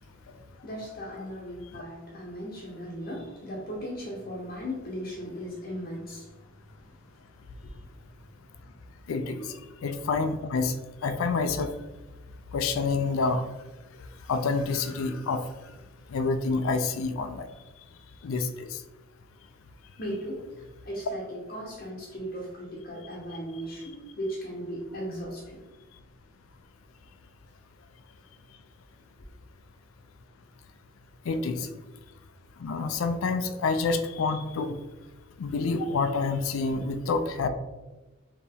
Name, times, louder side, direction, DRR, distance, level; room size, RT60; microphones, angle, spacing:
voice 1, 0.0-7.2 7.5-7.9 9.4-9.5 20.0-25.6, equal, 45° left, -3 dB, 0.7 m, -38 dB
voice 2, 9.1-9.5 9.8-10.7 11.0-11.7 12.5-13.5 14.3-15.4 16.1-17.5 18.2-18.8 31.3-31.7 32.6-34.8 35.4-37.5, left 4 dB, 80° left, 9 dB, 0.4 m, -28 dB
4.4 x 2.9 x 3.5 m, 1.1 s
head